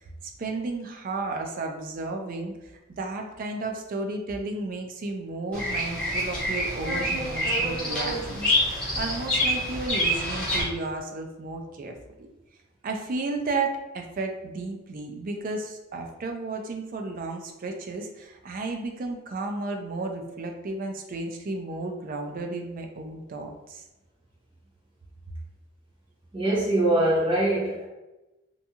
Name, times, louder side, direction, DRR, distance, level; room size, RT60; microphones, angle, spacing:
voice 1, 0.2-11.9 12.8-23.8, right 3 dB, 40° right, 3 dB, 0.4 m, -33 dB
Bird vocalization bird call bird song, 5.5-10.6, equal, 5° left, 0.8 m, -27 dB
voice 2, 26.3-27.9, right 1 dB, 25° right, -5 dB, 0.8 m, -23 dB
2.6 x 2.3 x 2.7 m, 1.0 s
head